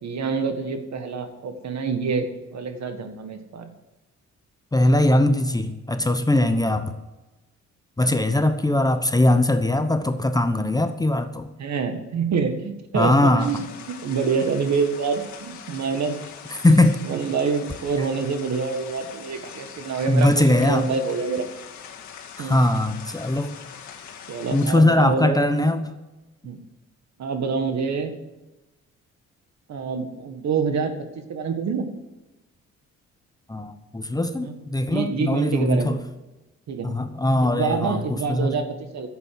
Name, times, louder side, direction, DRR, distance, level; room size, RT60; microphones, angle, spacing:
voice 1, 0.0-3.7 6.3-6.5 8.0-8.2 11.6-16.2 17.0-21.5 22.4-22.6 24.3-25.4 26.4-26.6 27.2-28.1 29.7-31.9 34.4-34.5 34.9-35.9 36.7-36.9 37.4-39.1, right 5 dB, 65° right, 7 dB, 1.8 m, -26 dB
voice 2, 4.7-6.9 8.0-11.5 12.9-13.5 16.6-17.0 20.1-20.9 22.4-23.6 24.5-25.9 33.5-36.0 36.8-38.0 38.3-38.6, left 1 dB, 10° left, 9 dB, 0.9 m, -20 dB
sound 1, 13.4-24.7, left 7 dB, 70° left, 1.9 m, -42 dB
11.0 x 8.2 x 7.7 m, 1.0 s
cardioid pair, 90°, 30 cm